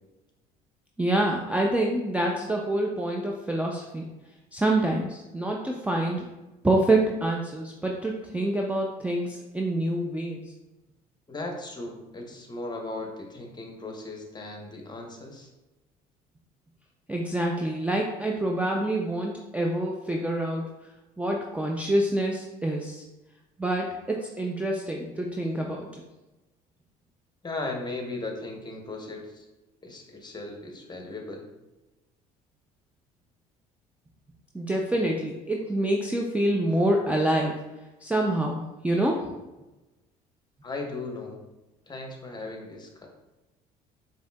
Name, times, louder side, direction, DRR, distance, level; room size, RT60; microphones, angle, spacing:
voice 1, 1.0-4.0 4.5-6.2 6.6-10.5 17.1-20.7 21.2-23.0 23.6-26.0 34.5-37.6 38.0-39.3, right 1 dB, 5° right, 0 dB, 0.4 m, -26 dB
voice 2, 11.3-15.5 27.4-29.5 29.8-31.5 40.6-41.4 41.9-43.1, left 2 dB, 20° left, 2 dB, 0.9 m, -37 dB
4.9 x 2.7 x 2.2 m, 1.1 s
hypercardioid pair, 65°, 19 cm